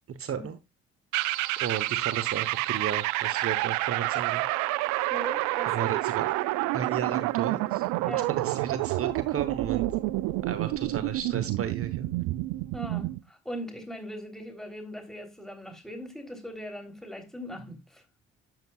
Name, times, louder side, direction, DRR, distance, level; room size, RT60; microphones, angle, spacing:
voice 1, 0.1-0.6 1.6-4.4 5.7-6.3 6.7-7.9 8.3-9.9 10.4-12.1, right 8 dB, 45° right, 1.1 m, -33 dB
sound 1, 1.1-13.2, right 18 dB, 60° right, 0.6 m, -29 dB
voice 2, 5.1-5.9 8.1-8.3 12.7-18.0, equal, ahead, 3.5 m, -40 dB
12.0 x 7.8 x 2.4 m
figure-of-eight pair, 45°, 33 cm